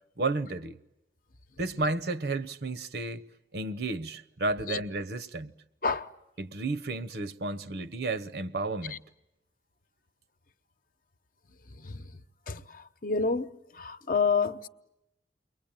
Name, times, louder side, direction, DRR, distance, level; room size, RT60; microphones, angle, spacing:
voice 1, 0.2-0.8 1.6-3.2 3.5-5.5 6.4-9.0, right 2 dB, 65° right, 1.0 m, -32 dB
voice 2, 13.0-13.5 13.8-14.7, left 5 dB, 50° left, 0.9 m, -28 dB
29.5 x 23.0 x 8.9 m
head